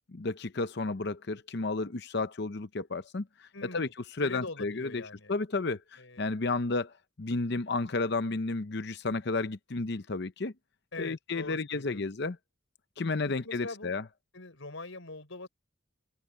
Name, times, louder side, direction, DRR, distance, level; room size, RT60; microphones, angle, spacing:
voice 1, 0.1-3.9 4.2-10.5 11.0-12.4 13.0-14.0, left 3 dB, 50° left, 0.7 m, -32 dB
voice 2, 3.5-3.9 4.2-5.3 6.0-6.3 10.9-12.0 13.3-13.9 14.3-15.5, left 2 dB, 70° left, 4.6 m, -42 dB
head